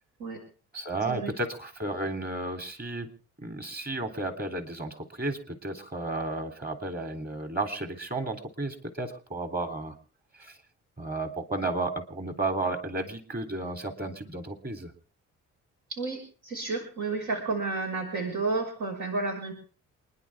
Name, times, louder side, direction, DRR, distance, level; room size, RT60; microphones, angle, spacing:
voice 1, 0.7-3.1 3.4-10.0 10.4-10.6 11.0-14.9, right 2 dB, 30° right, 7 dB, 3.6 m, -33 dB
voice 2, 15.9-19.5, right 3 dB, 85° right, 2 dB, 5.9 m, -31 dB
28.0 x 11.0 x 3.7 m, 0.39 s
cardioid pair, 90°, 30 cm